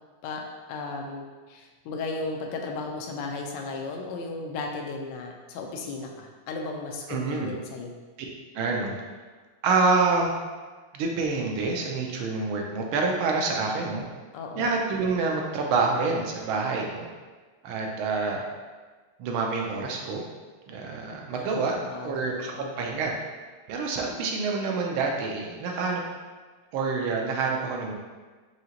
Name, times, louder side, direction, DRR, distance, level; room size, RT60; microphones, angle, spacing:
voice 1, 0.7-7.9 13.5-13.8 14.3-14.7 21.4-21.5 21.8-22.1 22.4-22.7, left 3 dB, 75° left, 2 dB, 1.0 m, -35 dB
voice 2, 7.1-7.5 8.5-9.0 9.6-10.3 10.9-14.0 14.6-17.1 17.6-18.4 19.2-20.2 20.7-21.8 22.0-23.1 23.7-26.0 26.7-27.9, right 4 dB, 75° right, 0 dB, 1.4 m, -27 dB
5.0 x 2.8 x 2.8 m, 1.4 s
omnidirectional pair, 2.4 m